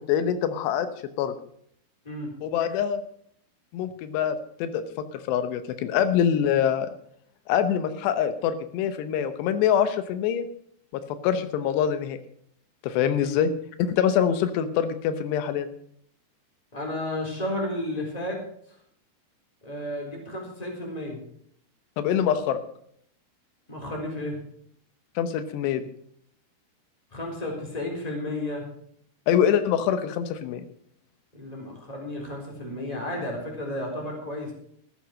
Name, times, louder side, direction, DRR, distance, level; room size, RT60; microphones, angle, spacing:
voice 1, 0.1-0.9 1.2-1.3 2.4-3.0 3.7-4.8 5.1-6.9 7.5-10.5 11.2-12.2 12.8-13.5 13.8-15.7 22.0-22.6 25.2-25.9 29.3-30.7, left 9 dB, 85° left, 11 dB, 3.1 m, -24 dB
voice 2, 16.7-18.4 19.6-21.2 23.7-24.4 27.1-28.6 31.3-34.5, left 1 dB, 10° left, 0 dB, 3.5 m, -32 dB
14.0 x 9.0 x 6.3 m, 0.66 s
omnidirectional pair, 4.7 m